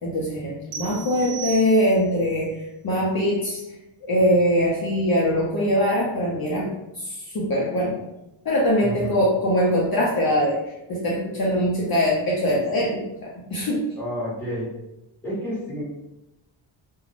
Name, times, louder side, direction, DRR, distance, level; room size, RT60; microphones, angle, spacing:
voice 1, 0.0-3.6 4.0-6.7 7.0-8.1 8.4-10.6 10.9-13.8, equal, 50° left, -4 dB, 0.6 m, -22 dB
sound 1, 0.7-2.2, right 8 dB, 85° right, 0.6 m, -36 dB
voice 2, 8.8-9.2 13.9-14.7 15.2-15.8, equal, 5° left, -8 dB, 1.2 m, -30 dB
2.5 x 2.2 x 3.2 m, 0.91 s
wide cardioid pair, 160°, 48 cm